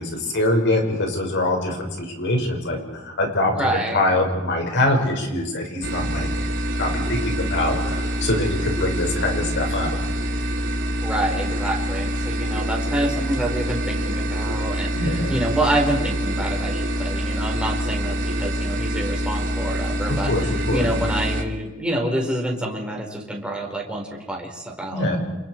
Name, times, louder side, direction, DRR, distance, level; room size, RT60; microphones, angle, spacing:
voice 1, 0.0-6.3 6.8-10.0 14.9-15.4 20.1-20.9 24.9-25.2, left 1 dB, 55° left, 2 dB, 5.8 m, -24 dB
voice 2, 3.5-4.0 11.0-14.9 15.3-20.3 20.7-25.2, right 1 dB, 5° right, -1 dB, 4.7 m, -27 dB
sound 1, 5.8-21.4, equal, 60° right, 2.9 m, -25 dB
29.5 x 28.5 x 4.8 m, 1.1 s
head